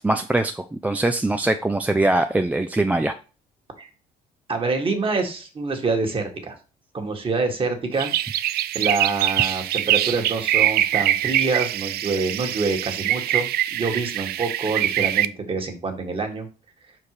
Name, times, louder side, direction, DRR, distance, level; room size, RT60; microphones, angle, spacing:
voice 1, 0.0-3.1, right 2 dB, 10° right, 6 dB, 0.4 m, -22 dB
voice 2, 4.5-6.6 6.9-8.5 8.7-16.5, right 4 dB, 30° right, 4 dB, 1.7 m, -26 dB
sound 1, 7.9-15.3, right 13 dB, 70° right, 0.4 m, -23 dB
5.4 x 4.6 x 4.8 m, 0.34 s
cardioid pair, 110°, 17 cm